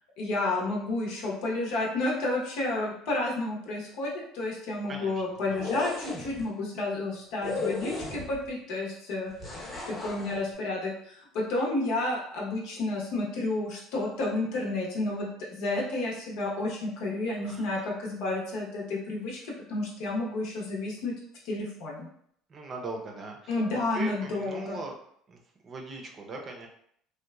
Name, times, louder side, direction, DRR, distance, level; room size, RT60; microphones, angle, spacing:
voice 1, 0.2-19.4 19.7-21.1 21.4-22.1 23.5-24.8, left 2 dB, 75° left, -2 dB, 0.8 m, -31 dB
voice 2, 4.9-5.2 5.5-5.8 17.4-17.8 22.5-23.6 23.9-24.9 25.3-26.7, right 3 dB, 35° right, 2 dB, 0.6 m, -40 dB
sound 1, 5.5-6.4 7.4-8.5 9.4-10.4, left 2 dB, 20° left, 0.9 m, -35 dB
2.9 x 2.2 x 2.3 m, 0.67 s
supercardioid pair, 110°, 0 cm